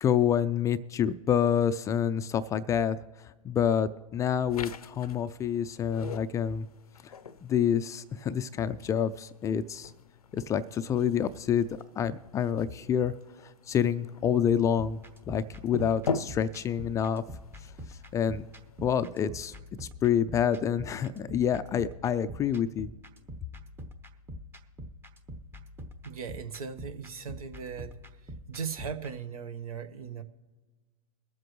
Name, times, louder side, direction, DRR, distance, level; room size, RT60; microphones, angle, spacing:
voice 1, 0.0-3.0 3.4-6.7 7.0-7.1 7.4-9.9 10.3-11.7 12.0-13.1 13.7-15.0 15.3-17.2 18.1-18.5 18.8-19.5 19.8-22.9, left 8 dB, 15° left, 11 dB, 0.3 m, -27 dB
sound 1, 4.5-19.2, left 5 dB, 85° left, 0.5 m, -42 dB
sound 2, 14.8-29.1, equal, 10° right, 0.8 m, -46 dB
voice 2, 26.0-27.9 28.2-30.2, right 6 dB, 75° right, 9 dB, 1.1 m, -38 dB
22.5 x 7.7 x 3.1 m, 1.3 s
hypercardioid pair, 115°, 19 cm